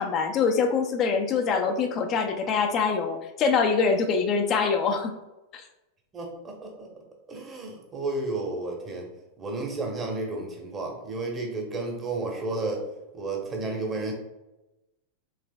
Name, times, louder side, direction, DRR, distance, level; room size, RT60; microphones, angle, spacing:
voice 1, 0.0-5.1 5.5-5.6, left 5 dB, 35° left, 5 dB, 0.5 m, -24 dB
voice 2, 6.1-6.9 7.3-9.1 9.4-12.8 13.1-14.1, right 2 dB, 20° right, 1 dB, 1.0 m, -32 dB
4.8 x 3.3 x 2.2 m, 0.99 s
figure-of-eight pair, 90°, 0 cm